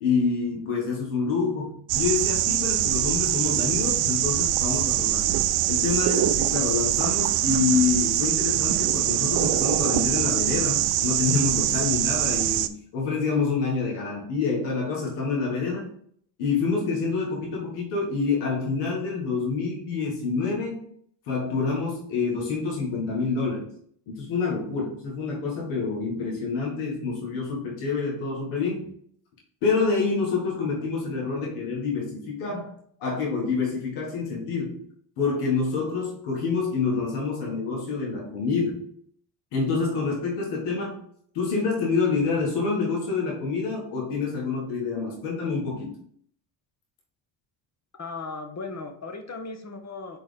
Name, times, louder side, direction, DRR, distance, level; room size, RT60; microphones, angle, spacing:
voice 1, 0.0-5.2 5.7-15.9 16.4-20.8 21.3-23.7 24.1-28.9 29.6-34.8 35.2-38.9 39.5-41.0 41.3-45.9, left 4 dB, 85° left, -2 dB, 1.8 m, -27 dB
sound 1, 1.9-12.7, right 13 dB, 80° right, 0.6 m, -24 dB
voice 2, 48.0-50.2, left 3 dB, 35° left, 5 dB, 1.2 m, -36 dB
4.5 x 4.2 x 5.1 m, 0.63 s
supercardioid pair, 70°, 49 cm